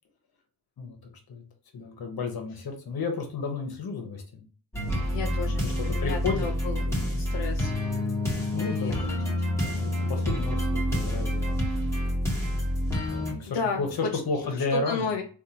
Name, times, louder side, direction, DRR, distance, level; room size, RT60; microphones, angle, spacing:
voice 1, 1.7-4.5 5.0-5.1 5.4-6.5 6.9-7.1 8.5-9.0 9.5-11.9 13.1-15.2, left 4 dB, 60° left, 4 dB, 1.0 m, -33 dB
sound 1, 4.7-13.3, left 1 dB, 5° left, 1.1 m, -28 dB
voice 2, 5.1-6.8 7.2-7.7 8.6-9.2 13.5-13.8 14.7-15.2, left 5 dB, 90° left, 2 dB, 0.6 m, -32 dB
3.8 x 2.6 x 2.8 m, 0.39 s
wide cardioid pair, 135°, 41 cm